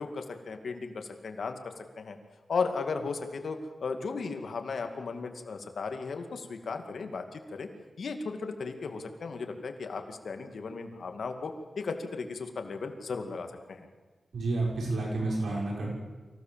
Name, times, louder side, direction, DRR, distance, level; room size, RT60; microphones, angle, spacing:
voice 1, 0.0-1.6 2.0-2.2 2.5-7.7 8.0-13.9, left 4 dB, 75° left, 6 dB, 2.2 m, -35 dB
voice 2, 14.3-15.9, right 2 dB, 85° right, -2 dB, 6.0 m, -30 dB
24.5 x 16.0 x 7.5 m, 1.3 s
wide cardioid pair, 85°, 0 cm